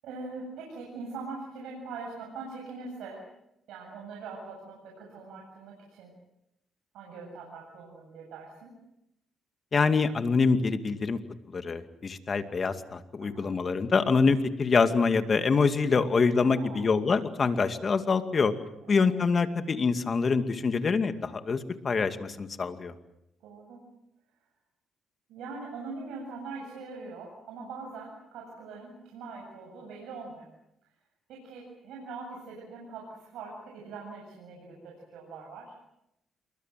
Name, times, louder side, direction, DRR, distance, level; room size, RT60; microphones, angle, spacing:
voice 1, 0.0-3.2 3.7-6.1 6.9-8.7 13.2-13.6 16.4-16.9 18.9-19.1 23.4-23.8 25.3-30.5 31.3-35.7, right 4 dB, 85° right, -1 dB, 7.8 m, -42 dB
voice 2, 9.7-11.2 11.5-18.5 18.9-22.9, left 4 dB, 40° left, 8 dB, 2.4 m, -25 dB
27.5 x 23.0 x 7.7 m, 0.84 s
cardioid pair, 90°, 0 cm